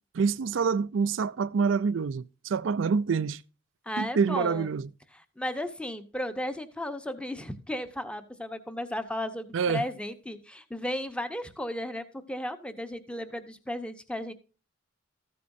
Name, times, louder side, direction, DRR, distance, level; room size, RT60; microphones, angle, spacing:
voice 1, 0.1-3.4 4.0-4.9 9.5-9.8, right 5 dB, 70° right, 0.4 m, -26 dB
voice 2, 3.8-4.8 5.1-14.3, left 1 dB, 5° left, 0.9 m, -35 dB
14.0 x 8.3 x 2.6 m
head